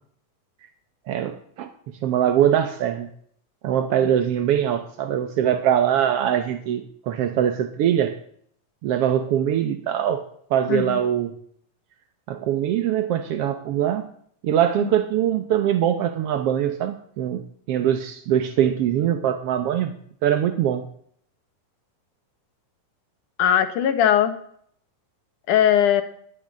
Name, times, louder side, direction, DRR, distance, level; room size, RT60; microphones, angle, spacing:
voice 1, 1.1-1.7 2.0-3.1 3.6-8.2 8.8-10.2 10.5-11.3 12.3-14.1 14.4-17.4 17.7-19.9 20.2-20.8, right 10 dB, 70° right, 8 dB, 1.4 m, -22 dB
voice 2, 10.7-11.0 14.8-14.9 23.4-24.3 25.5-26.0, left 10 dB, 70° left, 9 dB, 2.8 m, -19 dB
20.0 x 7.9 x 8.6 m, 0.64 s
omnidirectional pair, 3.9 m